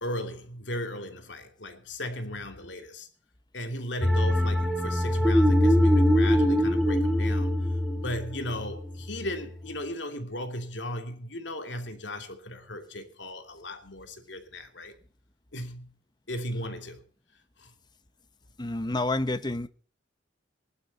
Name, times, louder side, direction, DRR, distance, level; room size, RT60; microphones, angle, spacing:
voice 1, 0.0-3.1 3.5-7.6 7.9-14.9 15.5-15.9 16.3-17.0 17.6-17.7, left 1 dB, 70° left, 2.8 m, -36 dB
sound 1, 4.0-9.3, equal, ahead, 2.2 m, -23 dB
voice 2, 18.6-19.7, left 2 dB, 25° left, 1.0 m, -29 dB
20.0 x 12.0 x 4.2 m
head